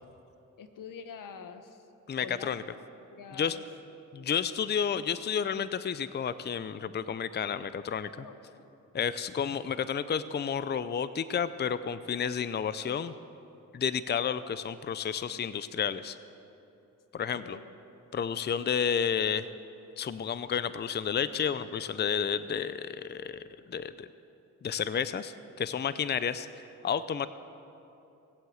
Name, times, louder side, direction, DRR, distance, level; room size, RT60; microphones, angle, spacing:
voice 1, 0.6-1.9 2.2-2.6 3.1-3.6 8.2-8.7 17.3-17.6, left 6 dB, 80° left, 8 dB, 1.1 m, -45 dB
voice 2, 2.1-2.6 3.4-3.6 4.1-8.2 8.9-13.1 13.7-16.2 17.1-17.6 18.1-19.5 20.0-24.1 24.6-27.3, left 7 dB, 35° left, 14 dB, 0.5 m, -31 dB
19.0 x 8.1 x 7.9 m, 2.8 s
cardioid pair, 75°, 32 cm